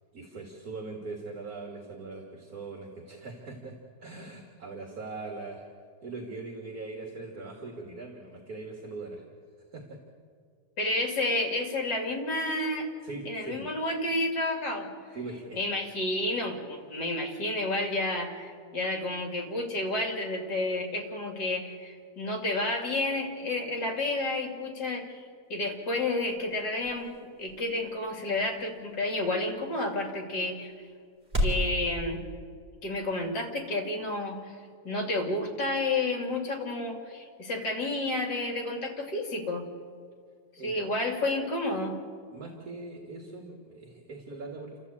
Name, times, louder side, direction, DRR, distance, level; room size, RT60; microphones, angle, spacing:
voice 1, 0.1-5.7 6.0-9.2 9.7-10.0 13.0-13.7 15.1-15.6 40.6-40.9 42.3-44.8, right 3 dB, 55° right, 1 dB, 2.4 m, -41 dB
voice 2, 10.8-12.9 13.3-14.9 15.5-25.2 25.5-27.1 27.4-30.7 31.4-32.2 32.8-34.6 34.9-39.6 40.6-42.0, left 2 dB, 65° left, 2 dB, 3.5 m, -30 dB
sound 1, 25.4-31.7, left 1 dB, 25° right, 4.0 m, -37 dB
30.0 x 13.5 x 8.5 m, 2.2 s
omnidirectional pair, 2.0 m